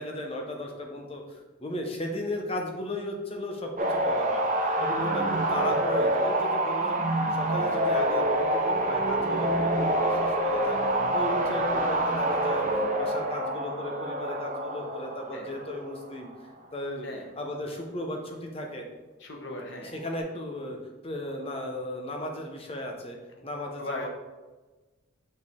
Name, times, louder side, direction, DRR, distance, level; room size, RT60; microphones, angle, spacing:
voice 1, 0.0-4.5 4.8-7.0 7.3-10.8 11.1-12.7 13.0-16.3 16.7-18.8 19.8-20.8 21.0-23.2 23.4-24.1, left 1 dB, 25° left, 2 dB, 0.8 m, -35 dB
sound 1, 3.8-16.1 20.0-20.2, right 1 dB, 40° right, 0.7 m, -27 dB
voice 2, 19.2-19.9 23.8-24.1, left 1 dB, 55° left, 1 dB, 1.1 m, -37 dB
6.4 x 4.4 x 3.6 m, 1.2 s
head